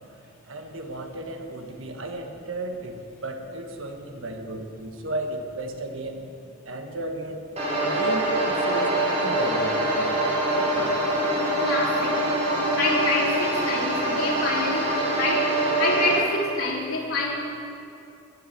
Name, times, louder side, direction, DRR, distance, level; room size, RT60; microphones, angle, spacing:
voice 1, 0.5-6.2 6.6-7.4 7.8-10.1 10.7-11.0, right 1 dB, 65° right, 4 dB, 1.5 m, -34 dB
sound 1, 7.6-16.2, right 1 dB, 30° right, 3.3 m, -24 dB
voice 2, 11.6-12.2 12.8-15.5 15.8-17.3, left 2 dB, 85° left, -3 dB, 3.5 m, -26 dB
12.0 x 10.5 x 8.8 m, 2.7 s
head